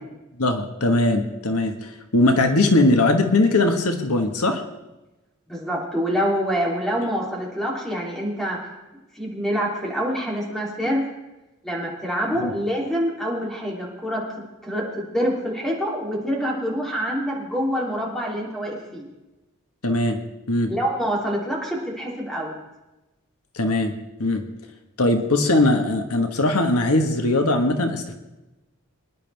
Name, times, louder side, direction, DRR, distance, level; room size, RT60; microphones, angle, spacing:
voice 1, 0.4-4.6 12.4-12.5 19.8-20.2 20.5-20.7 23.6-23.9 24.2-24.4 25.0-28.1, left 2 dB, 85° left, 5 dB, 1.4 m, -20 dB
voice 2, 5.5-8.6 9.1-11.0 11.6-14.2 14.6-19.1 20.7-22.5, equal, ahead, -3 dB, 3.1 m, -26 dB
25.0 x 10.5 x 3.5 m, 1.0 s
head